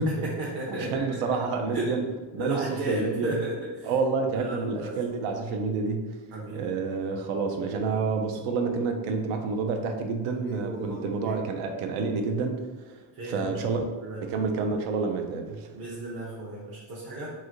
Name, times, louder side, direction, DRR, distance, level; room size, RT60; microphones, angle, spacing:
voice 1, 0.1-1.2 1.7-1.9 2.4-3.9 4.3-5.0 6.3-6.6 10.3-11.4 13.1-13.6 14.0-14.2 15.7-17.3, right 1 dB, 50° right, -6 dB, 0.7 m, -34 dB
voice 2, 0.7-2.1 2.3-3.4 3.8-6.1 6.5-12.6 13.2-13.8 14.2-15.7, right 4 dB, 85° right, 4 dB, 0.6 m, -28 dB
3.1 x 2.7 x 2.5 m, 1.3 s
cardioid pair, 85°, 47 cm